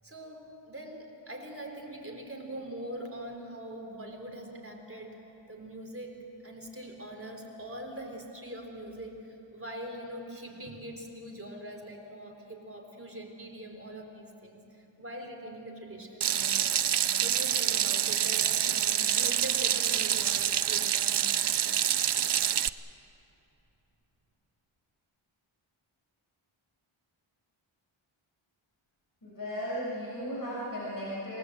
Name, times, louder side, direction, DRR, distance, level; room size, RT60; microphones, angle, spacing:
voice 1, 0.0-5.2 5.5-16.8 17.2-21.4, right 1 dB, 25° right, 2 dB, 3.8 m, -43 dB
Water tap faucet / Sink (filling or washing), 16.2-22.7, right 10 dB, 55° right, 0.6 m, -27 dB
voice 2, 29.2-31.4, equal, 40° left, -7 dB, 7.0 m, -36 dB
27.5 x 19.0 x 7.9 m, 2.9 s
wide cardioid pair, 95°, 50 cm